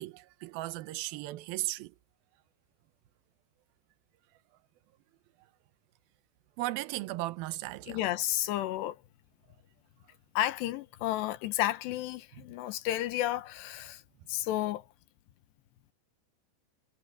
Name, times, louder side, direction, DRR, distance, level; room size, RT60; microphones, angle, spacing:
voice 1, 0.0-1.9 6.6-8.0, right 18 dB, 75° right, 2.4 m, -36 dB
voice 2, 7.9-9.0 10.4-14.0 14.3-14.9, left 14 dB, 80° left, 3.1 m, -32 dB
omnidirectional pair, 5.0 m